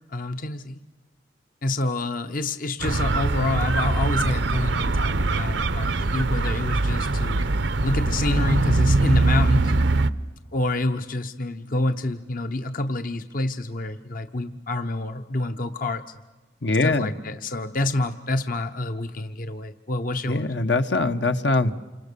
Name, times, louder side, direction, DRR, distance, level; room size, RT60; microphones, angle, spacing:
voice 1, 0.1-0.8 1.6-7.4 7.8-9.7 10.5-16.0 16.8-20.5, left 2 dB, 50° left, 8 dB, 0.9 m, -27 dB
sound 1, 2.8-10.1, right 2 dB, 85° right, 0.9 m, -22 dB
voice 2, 16.6-17.1 20.3-21.7, left 2 dB, 75° left, 8 dB, 1.2 m, -22 dB
28.5 x 26.5 x 6.9 m, 1.2 s
head